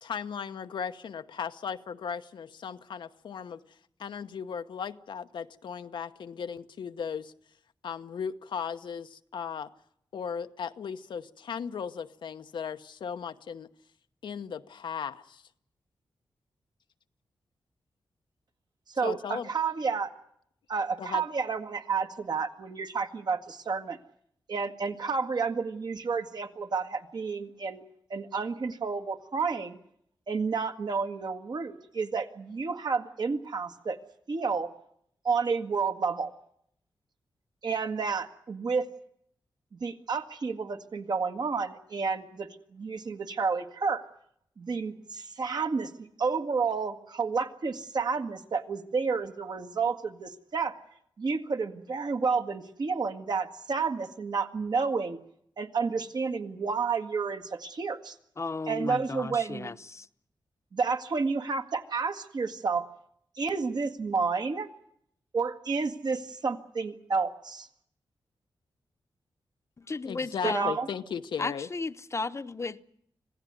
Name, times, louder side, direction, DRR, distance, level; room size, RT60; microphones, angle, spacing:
voice 1, 0.0-3.6 4.0-7.3 7.8-9.7 10.1-13.7 14.2-15.4 19.0-19.5 21.0-21.2 70.0-71.7, left 7 dB, 90° left, 1.0 m, -36 dB
voice 2, 18.9-20.1 20.7-24.0 24.5-27.8 28.1-29.8 30.3-34.0 34.3-34.7 35.2-36.3 37.6-38.9 39.7-44.0 44.6-50.7 51.2-55.2 55.6-58.2 58.7-59.7 60.7-62.9 63.4-64.7 65.3-67.7 70.4-70.9, right 5 dB, 60° right, 1.8 m, -30 dB
voice 3, 58.4-60.1 69.8-70.7 71.4-72.8, left 3 dB, 35° left, 0.9 m, -34 dB
26.0 x 16.5 x 9.6 m
cardioid pair, 80°, 8 cm